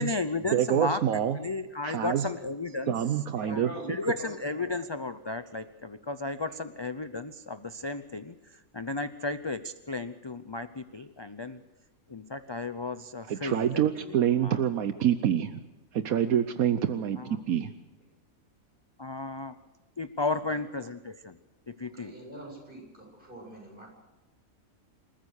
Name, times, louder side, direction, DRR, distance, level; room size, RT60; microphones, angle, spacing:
voice 1, 0.0-1.0 1.3-2.9 3.5-8.3 8.7-11.6 12.1-13.8 14.4-14.6 17.2-17.3 19.0-19.5 20.0-21.4 21.7-22.1, left 3 dB, 30° left, 11 dB, 0.5 m, -34 dB
voice 2, 0.5-1.4 1.8-2.3 2.9-3.7 13.3-15.6 15.9-17.2 17.5-17.7, right 9 dB, 80° right, 10 dB, 1.3 m, -26 dB
voice 3, 3.3-4.7 6.5-6.6 20.3-20.6 21.9-23.9, right 1 dB, 35° right, -1 dB, 8.3 m, -45 dB
27.5 x 14.5 x 6.5 m, 1.1 s
omnidirectional pair, 1.5 m